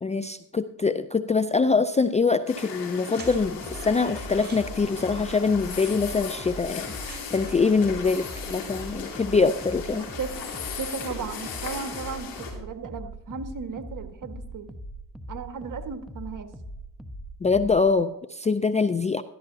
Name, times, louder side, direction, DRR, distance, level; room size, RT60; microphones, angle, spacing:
voice 1, 0.0-10.1 17.4-19.2, left 4 dB, 15° left, 12 dB, 0.5 m, -24 dB
sound 1, 1.9-2.4 2.7-2.8 3.1-3.7 4.2-7.7 8.0-8.8, right 3 dB, 20° right, 4.8 m, -48 dB
sound 2, 2.5-12.5, left 6 dB, 65° left, 4.5 m, -37 dB
sound 3, 3.2-17.9, right 1 dB, ahead, 1.1 m, -41 dB
voice 2, 9.9-14.7 15.3-16.5, right 5 dB, 45° right, 7 dB, 1.7 m, -36 dB
14.0 x 13.0 x 2.8 m, 0.82 s
supercardioid pair, 70°, 45 cm